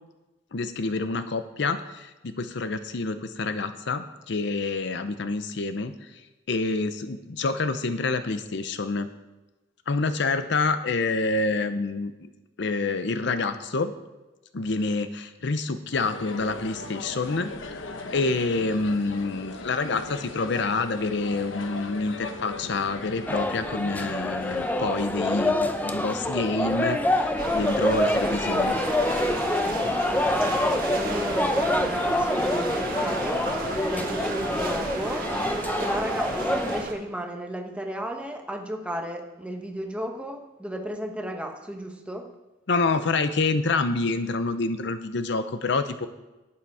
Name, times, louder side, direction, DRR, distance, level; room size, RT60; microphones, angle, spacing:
voice 1, 0.5-5.9 6.5-9.1 9.9-12.1 12.6-13.9 14.5-17.9 18.1-28.8 42.7-46.1, left 3 dB, 65° left, 11 dB, 0.6 m, -27 dB
sound 1, 15.9-34.6, left 3 dB, 80° left, 0.9 m, -40 dB
sound 2, 23.3-36.8, left 1 dB, 10° left, 0.6 m, -26 dB
sound 3, 27.4-36.9, right 3 dB, 50° right, 1.4 m, -34 dB
voice 2, 30.5-33.5 33.8-35.3 35.8-42.3, equal, 5° right, 4 dB, 1.0 m, -34 dB
11.5 x 8.6 x 4.8 m, 1.1 s
head